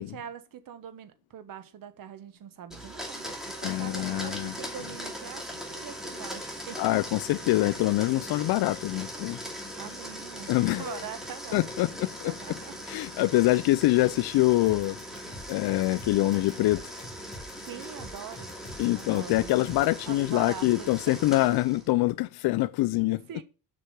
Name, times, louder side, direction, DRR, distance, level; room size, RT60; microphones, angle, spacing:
voice 1, 0.0-6.8 9.5-11.6 12.2-12.8 17.6-18.5 18.9-19.5 20.1-21.2 21.5-21.6 23.3-23.4, right 9 dB, 60° right, 1.4 m, -43 dB
Domestic sounds home sounds, 2.7-21.9, equal, ahead, 2.5 m, -40 dB
voice 2, 3.6-4.5 6.8-9.4 10.5-11.0 11.5-12.3 12.9-15.0 15.5-16.8 18.8-23.2, left 18 dB, 75° left, 0.5 m, -25 dB
sound 1, 14.7-20.0, equal, 20° left, 4.0 m, -45 dB
7.4 x 6.0 x 6.6 m
cardioid pair, 125°, 38 cm